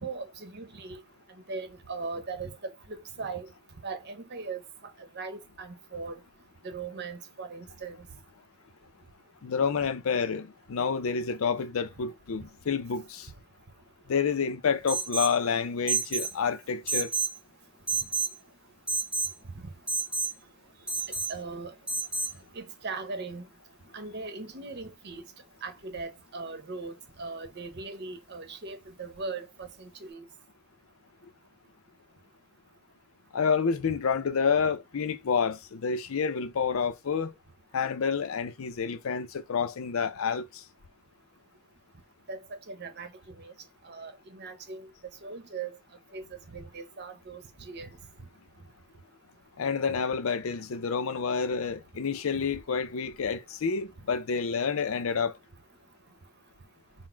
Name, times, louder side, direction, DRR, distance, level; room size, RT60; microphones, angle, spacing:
voice 1, 0.0-1.0 1.5-2.6 2.9-3.5 3.8-4.6 5.1-6.2 6.6-8.0 21.3-21.7 22.5-23.4 23.9-25.2 25.6-30.2 42.3-42.4 42.7-43.1 43.4-43.5 43.8-44.9 45.2-45.7 46.1-46.2 46.5-47.9, right 4 dB, 50° right, 0.9 m, -39 dB
voice 2, 9.4-13.3 14.1-17.1 33.3-37.3 37.7-40.5 49.6-55.3, left 6 dB, 70° left, 0.5 m, -29 dB
Alarm, 14.9-15.4 15.9-16.3 16.9-17.4 17.9-18.3 18.9-19.3 19.9-20.3 20.9-21.3 21.9-22.3, right 4 dB, 5° right, 1.1 m, -29 dB
4.1 x 2.1 x 4.4 m
head